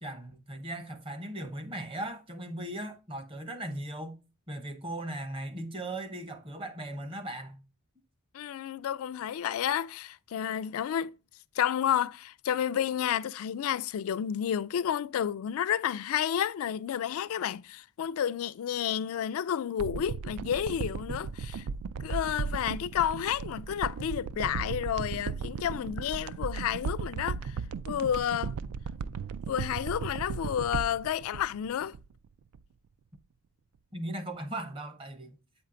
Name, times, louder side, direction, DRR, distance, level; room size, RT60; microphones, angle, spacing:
voice 1, 0.0-4.2 4.5-7.6 33.9-35.4, right 1 dB, 25° right, 0.8 m, -38 dB
voice 2, 8.3-11.1 11.6-21.6 22.0-27.6 27.9-28.5 29.5-32.0, left 9 dB, 70° left, 0.3 m, -31 dB
sound 1, 19.8-32.3 32.5-32.6, right 5 dB, 80° right, 0.3 m, -36 dB
8.1 x 4.4 x 3.7 m
head